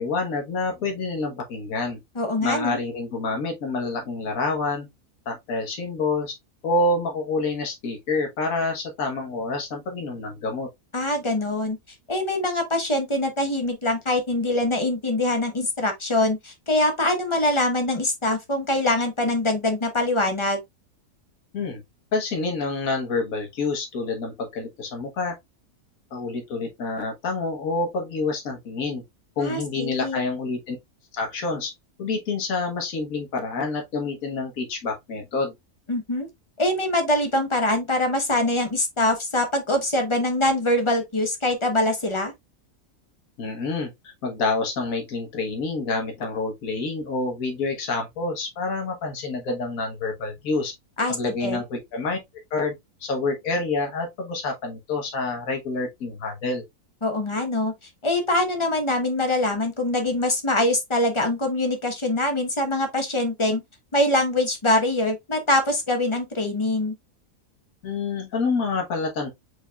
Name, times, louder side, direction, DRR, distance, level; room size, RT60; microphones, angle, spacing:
voice 1, 0.0-2.0 2.4-4.9 5.2-6.3 6.6-10.7 21.5-21.8 22.1-25.4 26.1-29.0 29.4-30.8 31.1-31.7 32.0-35.5 43.4-50.7 51.1-52.2 52.5-52.7 53.0-56.6 67.8-69.3, left 3 dB, 65° left, 1.7 m, -27 dB
voice 2, 2.2-2.8 10.9-11.8 12.1-20.6 29.4-30.2 35.9-36.3 36.6-42.3 51.0-51.6 57.0-57.7 58.0-63.6 63.9-66.9, left 1 dB, 25° left, 0.8 m, -23 dB
4.7 x 4.0 x 2.3 m
omnidirectional pair, 1.6 m